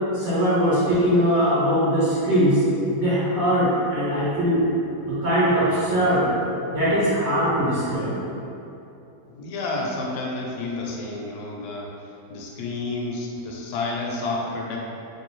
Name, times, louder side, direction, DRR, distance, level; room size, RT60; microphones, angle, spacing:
voice 1, 0.1-2.6 2.9-4.6 5.1-6.3 6.7-8.2, equal, 60° right, -10 dB, 0.7 m, -21 dB
voice 2, 9.3-11.9 12.3-14.8, left 2 dB, 75° left, -2 dB, 1.1 m, -30 dB
3.0 x 2.7 x 3.0 m, 2.9 s
omnidirectional pair, 1.9 m